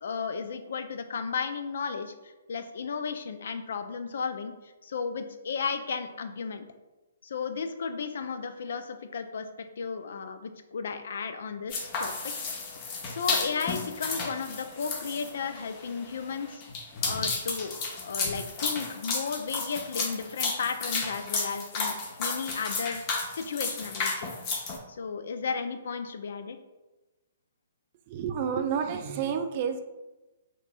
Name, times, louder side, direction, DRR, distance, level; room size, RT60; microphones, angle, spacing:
voice 1, 0.0-4.5 4.8-6.6 7.2-9.5 9.8-12.1 13.1-16.6 17.0-24.3 25.0-26.6, left 5 dB, 65° left, 9 dB, 0.4 m, -34 dB
sound 1, 11.7-24.8, left 4 dB, 35° left, 0.8 m, -33 dB
voice 2, 28.1-29.8, right 7 dB, 40° right, 7 dB, 0.4 m, -30 dB
5.8 x 3.0 x 2.3 m, 1.1 s
figure-of-eight pair, 130°, 0 cm